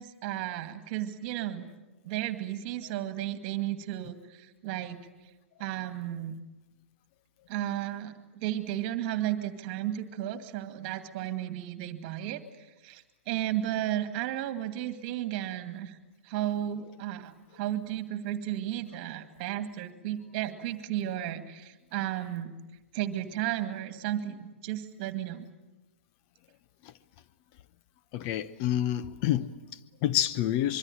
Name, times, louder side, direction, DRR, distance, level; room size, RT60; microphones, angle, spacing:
voice 1, 0.0-1.7 2.0-5.0 5.6-6.3 7.5-8.1 8.4-12.4 12.8-16.0 16.2-22.5 22.9-24.4 24.6-25.5, right 12 dB, 40° right, 2.2 m, -33 dB
voice 2, 28.1-30.8, left 12 dB, 40° left, 0.9 m, -29 dB
25.0 x 23.5 x 9.1 m
figure-of-eight pair, 110°, 7 cm